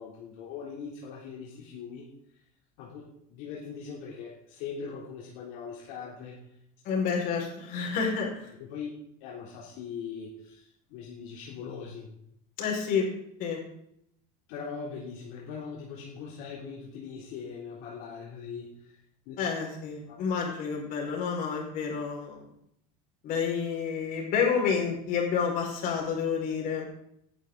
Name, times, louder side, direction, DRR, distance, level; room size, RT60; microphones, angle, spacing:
voice 1, 0.0-2.0 2.8-6.6 8.6-8.9 9.2-12.1 14.5-19.0 19.3-19.4 20.1-20.2, left 6 dB, 65° left, -3 dB, 3.5 m, -41 dB
voice 2, 6.8-8.5 12.6-13.1 13.4-13.6 19.4-22.4 23.2-26.9, left 6 dB, 45° left, 0 dB, 5.5 m, -29 dB
19.0 x 11.0 x 4.1 m, 0.75 s
supercardioid pair, 150°, 20 cm